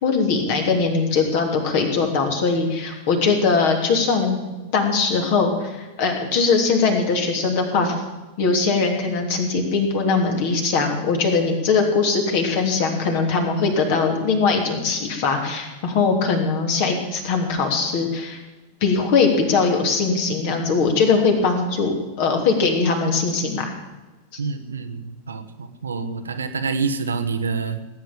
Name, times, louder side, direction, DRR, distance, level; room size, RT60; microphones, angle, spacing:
voice 1, 0.0-4.4 4.7-7.9 8.4-18.4 18.8-23.7 24.3-24.4, left 4 dB, 50° left, 3 dB, 3.1 m, -21 dB
voice 2, 24.4-27.9, right 4 dB, 70° right, 8 dB, 1.1 m, -27 dB
18.0 x 9.1 x 7.4 m, 1.1 s
figure-of-eight pair, 90°, 0 cm